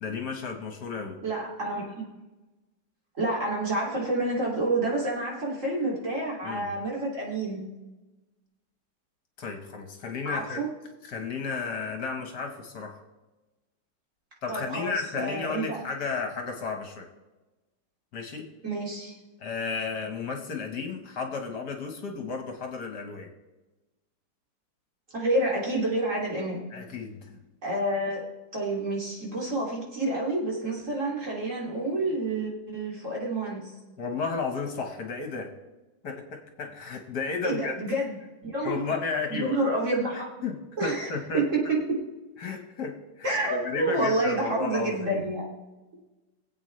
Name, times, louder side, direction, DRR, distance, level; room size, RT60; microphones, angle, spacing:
voice 1, 0.0-1.2 6.4-6.7 9.4-10.7 11.0-13.0 14.4-17.1 18.1-18.5 19.4-23.3 26.7-27.4 34.0-35.5 36.0-37.7 38.6-39.6 40.4-41.5 42.4-45.2, left 4 dB, 65° left, 4 dB, 1.9 m, -33 dB
voice 2, 1.2-2.0 3.2-7.6 10.2-10.7 14.5-15.8 18.6-19.1 25.1-26.6 27.6-28.2 28.5-33.7 37.4-38.2 38.4-38.8 39.3-40.4 40.8-41.1 41.3-42.0 43.2-45.5, right 2 dB, 45° right, -3 dB, 3.0 m, -28 dB
22.0 x 8.2 x 3.2 m, 1.1 s
omnidirectional pair, 1.9 m